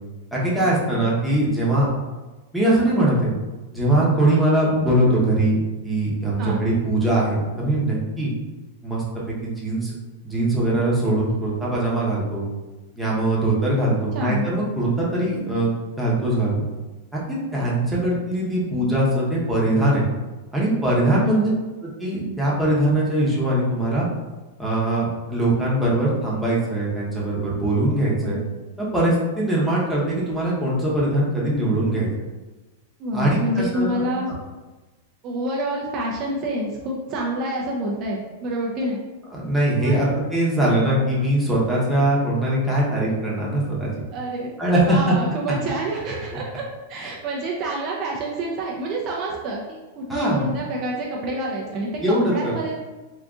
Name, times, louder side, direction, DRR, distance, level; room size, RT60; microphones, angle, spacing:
voice 1, 0.3-1.9 2.5-3.3 3.7-8.3 8.8-9.9 10.2-12.5 13.0-16.5 17.1-20.0 20.5-21.5 21.8-24.1 24.6-28.4 28.8-32.1 33.1-34.0 39.3-43.9 44.6-45.0 47.0-47.1 50.1-50.4 52.0-52.5, right 1 dB, ahead, -7 dB, 0.9 m, -21 dB
voice 2, 21.1-21.5 28.2-28.4 33.0-34.3 35.2-39.0 39.8-40.0 44.1-44.5 44.8-52.7, right 1 dB, 40° right, -3 dB, 0.5 m, -28 dB
3.7 x 2.5 x 2.4 m, 1.2 s
hypercardioid pair, 130°, 0 cm